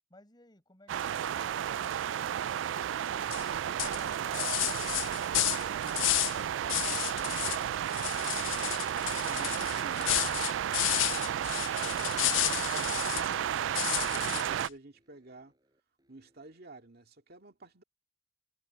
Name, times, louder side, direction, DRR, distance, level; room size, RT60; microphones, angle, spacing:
voice 1, 0.1-3.6 4.0-4.6 5.5-6.3 6.5-8.3, left 2 dB, 20° left, 7.7 m, -59 dB
sound 1, 0.9-14.7, right 9 dB, 75° right, 0.3 m, -32 dB
sound 2, 3.3-3.5 3.8-6.4 6.7-7.6 7.9-13.3 13.8-14.7, left 17 dB, 85° left, 0.4 m, -32 dB
voice 2, 9.1-15.5 16.1-17.8, right 2 dB, 55° right, 2.2 m, -51 dB
sound 3, 14.9-16.6, equal, 20° right, 7.2 m, -72 dB
head